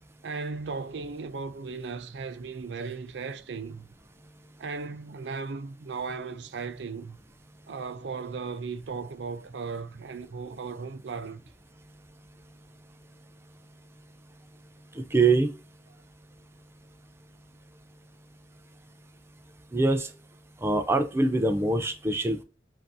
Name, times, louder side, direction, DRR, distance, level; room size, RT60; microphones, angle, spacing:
voice 1, 0.2-3.9 4.6-7.2 7.7-11.4, right 4 dB, 80° right, 0.5 m, -36 dB
voice 2, 14.9-15.5 19.7-20.1 20.6-22.4, right 3 dB, 15° right, 0.4 m, -24 dB
7.4 x 2.7 x 2.6 m
head